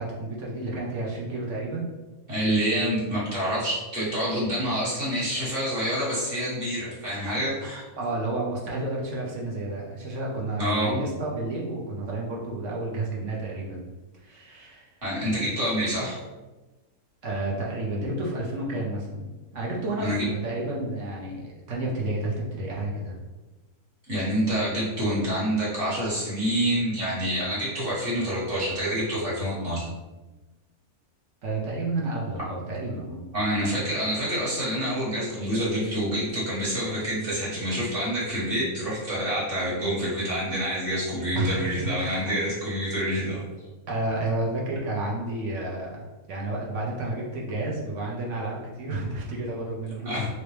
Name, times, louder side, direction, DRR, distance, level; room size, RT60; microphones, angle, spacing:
voice 1, 0.0-1.9 8.0-13.8 14.2-14.9 17.2-19.3 19.5-23.2 31.4-33.2 41.3-42.4 43.9-45.9 46.3-50.3, right 2 dB, 60° right, -3 dB, 1.0 m, -31 dB
voice 2, 2.3-7.8 10.6-11.0 15.0-16.2 20.0-20.3 24.1-29.9 33.3-43.4 50.0-50.3, equal, 40° right, -9 dB, 1.6 m, -27 dB
3.0 x 3.0 x 3.2 m, 1.2 s
omnidirectional pair, 1.6 m